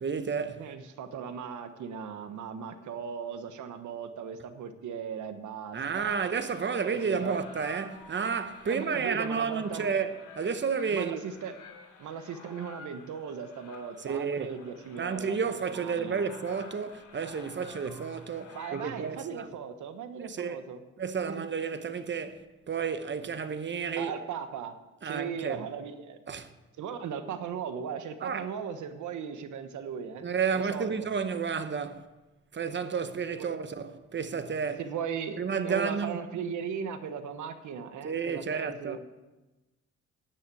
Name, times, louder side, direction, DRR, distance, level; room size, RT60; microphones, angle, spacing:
voice 1, 0.0-0.7 5.7-11.2 14.0-14.5 15.0-19.5 20.2-20.6 21.0-24.1 25.0-25.6 26.3-26.5 28.2-28.4 30.2-32.1 32.5-34.8 35.4-36.2 38.0-39.0, right 6 dB, 40° right, 1.1 m, -31 dB
voice 2, 0.6-6.2 6.8-7.4 8.7-9.9 10.8-11.5 12.0-16.2 18.5-20.8 21.2-21.5 24.0-24.8 25.0-26.2 26.8-31.1 33.3-33.5 34.8-39.0, right 7 dB, 75° right, 1.3 m, -38 dB
sound 1, 5.7-19.3, left 4 dB, 80° left, 3.1 m, -51 dB
10.0 x 9.1 x 8.5 m
cardioid pair, 90°, 30 cm